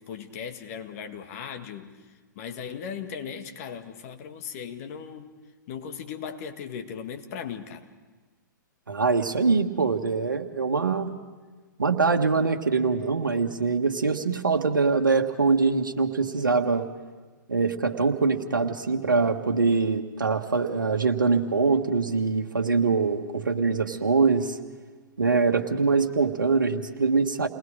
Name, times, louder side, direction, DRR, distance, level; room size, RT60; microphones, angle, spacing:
voice 1, 0.0-1.9 2.4-5.3 5.7-7.9, left 7 dB, 45° left, 6 dB, 1.9 m, -37 dB
voice 2, 8.9-11.1 11.8-16.9 17.5-24.6 25.2-27.5, right 4 dB, 85° right, 3 dB, 1.4 m, -23 dB
29.0 x 20.0 x 5.0 m, 1.3 s
figure-of-eight pair, 115°, 10 cm